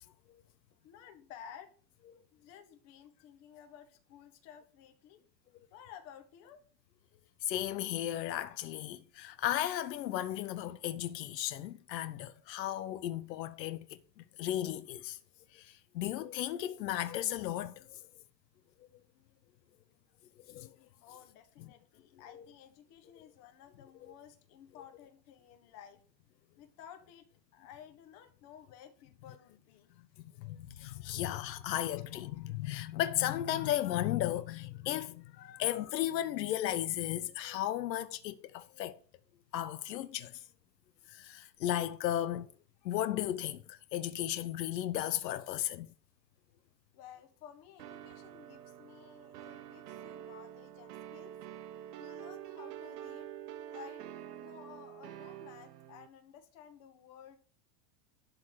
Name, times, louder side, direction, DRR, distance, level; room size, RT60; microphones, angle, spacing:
voice 1, 0.8-1.7 2.3-5.2 5.7-6.6 21.0-26.0 26.6-29.9 30.4-30.5 46.9-51.4 52.0-53.3 53.7-54.0 54.3-57.4, left 9 dB, 30° left, 1.5 m, -54 dB
voice 2, 7.4-15.2 15.5-18.0 20.5-20.7 22.3-22.4 30.4-39.0 39.5-40.4 41.1-42.5 42.8-45.9, left 12 dB, 80° left, 1.0 m, -35 dB
sound 1, 47.8-56.1, right 11 dB, 75° right, 1.4 m, -47 dB
12.0 x 4.1 x 6.3 m
supercardioid pair, 170°, 49 cm